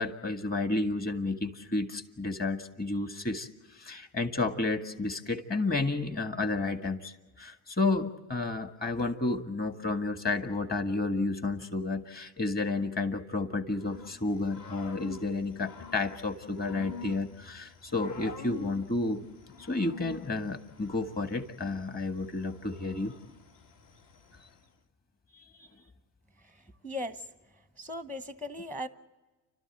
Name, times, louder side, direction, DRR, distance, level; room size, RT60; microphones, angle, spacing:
voice 1, 0.0-19.2 19.7-23.1 25.3-25.7, left 3 dB, 25° left, 7 dB, 1.7 m, -31 dB
Growling / Cricket, 13.8-24.7, left 6 dB, 55° left, 2.2 m, -48 dB
voice 2, 26.8-27.2 27.8-28.9, left 1 dB, 5° left, 11 dB, 0.9 m, -37 dB
30.0 x 13.0 x 9.0 m, 1.2 s
supercardioid pair, 110°, 39 cm